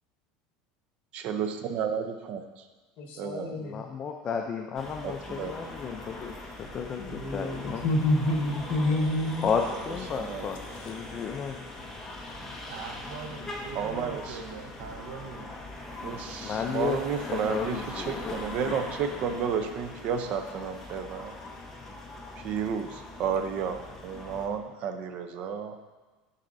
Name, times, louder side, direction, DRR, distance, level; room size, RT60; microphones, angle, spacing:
voice 1, 1.1-2.6 3.2-3.6 5.0-5.7 10.2-10.5 13.7-14.4 16.0-21.4 22.4-25.8, right 7 dB, 45° right, 7 dB, 0.6 m, -32 dB
voice 2, 3.0-3.8 7.0-9.5 10.7-10.9, left 1 dB, 50° left, 1 dB, 1.3 m, -28 dB
voice 3, 3.6-6.3 6.7-7.8 9.4-11.6 16.4-17.0 17.3-18.3, left 6 dB, 30° left, 3 dB, 0.4 m, -33 dB
sound 1, 4.8-24.5, left 2 dB, 15° left, 0.9 m, -41 dB
voice 4, 12.7-15.6, right 5 dB, 85° right, 4 dB, 0.9 m, -41 dB
11.0 x 4.1 x 2.6 m, 1.3 s
supercardioid pair, 145°, 3 cm